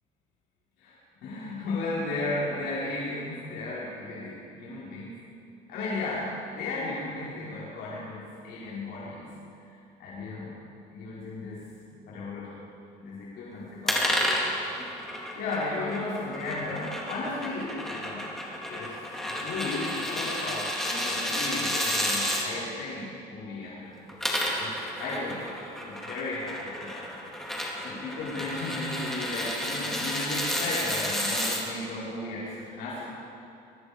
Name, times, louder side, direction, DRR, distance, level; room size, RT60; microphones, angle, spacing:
voice 1, 0.8-5.2 5.7-9.3 10.0-10.5 10.9-11.6 12.1-12.5 13.0-14.1 14.5-14.7 15.3-18.3 18.7-19.0 19.2-24.0 24.6-25.5 25.8-27.1 27.8-33.1, left 2 dB, 85° left, -9 dB, 5.5 m, -35 dB
sound 1, 13.9-22.5 24.0-31.6, equal, ahead, 4.0 m, -31 dB
24.0 x 20.0 x 5.4 m, 2.6 s
cardioid pair, 110°, 17 cm